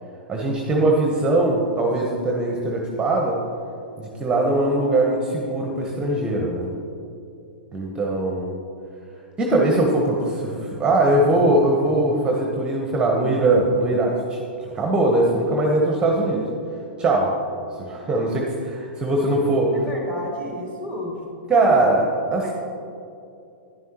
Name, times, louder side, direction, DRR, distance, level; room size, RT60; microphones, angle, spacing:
voice 1, 0.3-3.4 4.0-6.7 7.7-8.5 9.4-16.4 17.0-17.3 17.8-19.7 21.5-22.1 22.3-22.5, right 2 dB, 15° right, 0 dB, 1.1 m, -21 dB
voice 2, 19.7-21.3 21.6-21.8 22.4-22.5, left 1 dB, 20° left, -3 dB, 2.4 m, -32 dB
11.0 x 10.5 x 3.0 m, 2.6 s
figure-of-eight pair, 100°, 6 cm